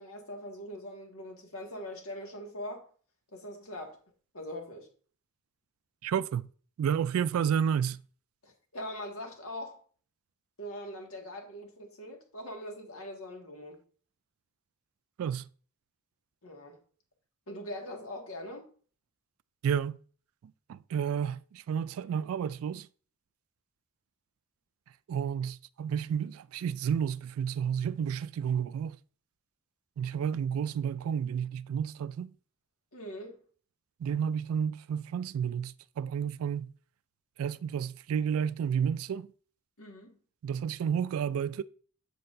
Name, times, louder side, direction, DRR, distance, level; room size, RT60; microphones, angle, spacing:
voice 1, 0.0-2.9 3.3-4.0 4.3-4.9 8.4-9.8 10.6-13.8 16.4-16.8 17.5-18.7 32.9-33.4 39.8-40.2, left 1 dB, 85° left, 1.9 m, -42 dB
voice 2, 6.0-6.5 6.8-8.0 15.2-15.5 19.6-20.0 20.7-22.9 25.1-29.0 30.0-32.3 34.0-36.7 37.4-39.3 40.4-41.6, right 8 dB, 85° right, 0.3 m, -31 dB
7.7 x 7.3 x 2.6 m
head